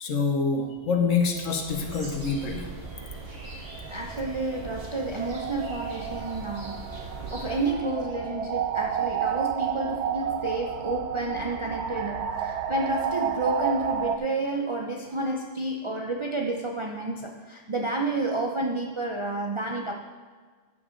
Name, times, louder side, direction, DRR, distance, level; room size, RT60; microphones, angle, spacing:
voice 1, 0.0-2.7, left 5 dB, 90° left, 1.4 m, -26 dB
sound 1, 0.9-14.2, right 8 dB, 65° right, 0.9 m, -32 dB
sound 2, 1.6-7.7, right 2 dB, 50° right, 2.1 m, -41 dB
voice 2, 3.9-20.0, right 2 dB, 30° right, 0.6 m, -30 dB
13.5 x 7.0 x 3.8 m
omnidirectional pair, 1.3 m